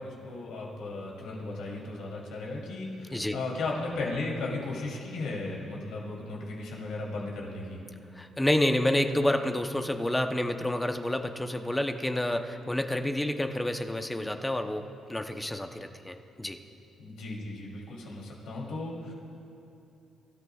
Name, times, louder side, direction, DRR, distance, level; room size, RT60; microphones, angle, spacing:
voice 1, 0.0-7.8 17.0-19.1, left 2 dB, 80° left, -3 dB, 3.1 m, -36 dB
voice 2, 8.1-16.6, left 1 dB, 10° left, 6 dB, 0.8 m, -29 dB
24.0 x 13.5 x 2.4 m, 2.7 s
cardioid pair, 90°, 0 cm